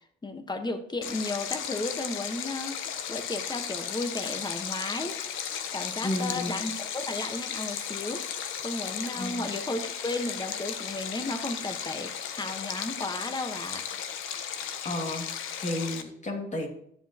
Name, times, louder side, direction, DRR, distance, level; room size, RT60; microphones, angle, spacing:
voice 1, 0.2-2.8 3.1-5.2 5.7-8.2 8.6-13.8, left 2 dB, 20° left, 7 dB, 1.3 m, -34 dB
Stream, 1.0-16.0, left 8 dB, 85° left, 0.9 m, -35 dB
voice 2, 6.0-6.5 9.2-9.5 14.8-15.3 15.6-16.7, left 1 dB, 35° left, 2 dB, 2.3 m, -32 dB
13.0 x 7.7 x 3.0 m, 0.71 s
cardioid pair, 90°, 20 cm